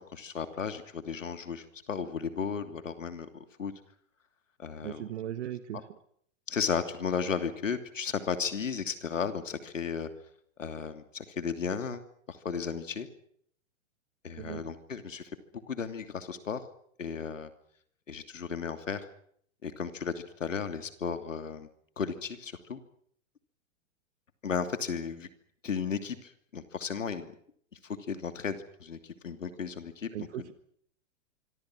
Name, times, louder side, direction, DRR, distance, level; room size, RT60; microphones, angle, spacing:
voice 1, 0.0-3.3 3.6-3.7 4.6-5.1 5.7-5.8 6.5-10.1 10.6-12.0 12.3-13.1 14.2-15.2 15.7-16.6 17.0-17.5 18.1-19.0 19.6-21.7 22.0-22.8 24.4-25.3 25.6-27.3 27.8-29.0 29.2-30.3, left 6 dB, 90° left, 8 dB, 2.9 m, -34 dB
voice 2, 4.8-5.9 14.4-14.6 30.1-30.5, right 11 dB, 65° right, 10 dB, 1.7 m, -38 dB
25.5 x 24.5 x 6.2 m, 0.64 s
hypercardioid pair, 120°, 37 cm